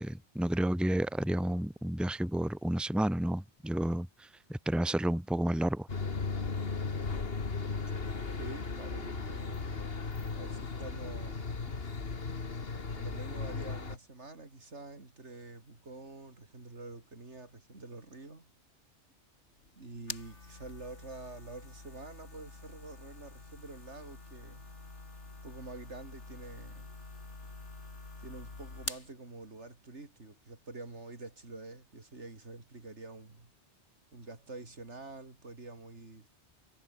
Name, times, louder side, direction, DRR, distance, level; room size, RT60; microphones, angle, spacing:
voice 1, 0.0-5.9, right 1 dB, ahead, 1.5 m, -31 dB
sound 1, 5.9-14.0, left 4 dB, 55° left, 2.1 m, -36 dB
voice 2, 8.4-10.0 10.3-11.5 12.7-18.5 19.8-24.7 25.4-26.9 28.2-33.5 34.1-36.3, right 3 dB, 80° right, 3.8 m, -47 dB
sound 2, 19.5-29.1, left 3 dB, 80° left, 3.5 m, -47 dB
omnidirectional pair, 1.2 m